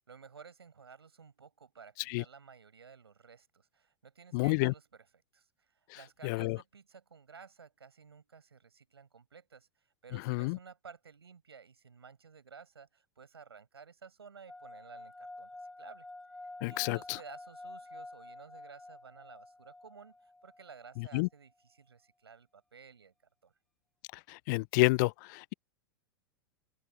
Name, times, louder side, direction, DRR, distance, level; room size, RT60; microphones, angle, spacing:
voice 1, 0.0-5.1 5.3-15.5 15.8-16.1 16.7-23.1 23.4-23.5, right 6 dB, 80° right, 6.6 m, -54 dB
voice 2, 4.3-4.7 6.2-6.6 10.3-10.6 16.6-17.2 21.1-21.3 24.3-25.5, left 26 dB, 50° left, 0.5 m, -29 dB
sound 1, 14.5-21.1, left 2 dB, 5° left, 2.5 m, -49 dB
open air
figure-of-eight pair, 95°, 13 cm